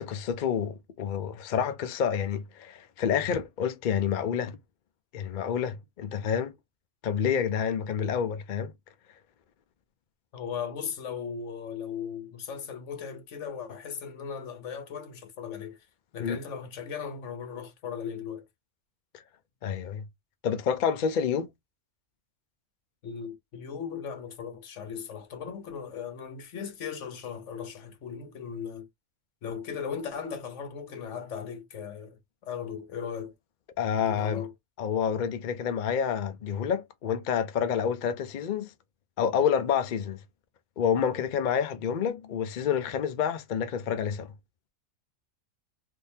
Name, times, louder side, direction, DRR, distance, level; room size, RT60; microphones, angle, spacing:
voice 1, 0.0-4.6 5.1-6.5 7.0-8.7 16.2-16.4 19.6-20.0 20.4-21.5 33.8-34.5 34.8-38.7 39.2-40.2 40.8-44.3, left 7 dB, 55° left, 0.6 m, -28 dB
voice 2, 10.3-15.8 16.1-18.4 23.0-28.9 29.4-33.3 34.0-34.5, left 7 dB, 75° left, 1.2 m, -37 dB
3.7 x 2.6 x 2.7 m
omnidirectional pair, 1.3 m